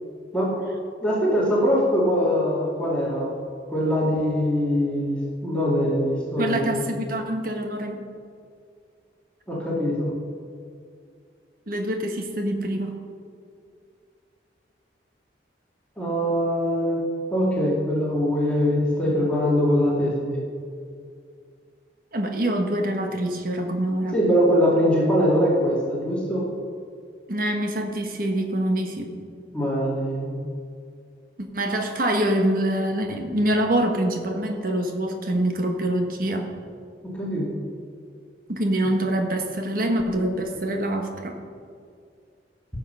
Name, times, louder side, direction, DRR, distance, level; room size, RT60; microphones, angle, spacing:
voice 1, 1.0-3.3 3.7-6.8 9.5-10.1 16.0-17.0 17.3-20.4 24.1-26.5 29.5-30.4 37.0-37.5, equal, 5° left, -6 dB, 2.2 m, -22 dB
voice 2, 6.3-8.0 11.7-12.9 22.1-24.2 27.3-29.2 31.4-36.5 38.5-41.4, right 1 dB, 50° right, 4 dB, 1.3 m, -25 dB
16.5 x 6.6 x 5.6 m, 2.3 s
head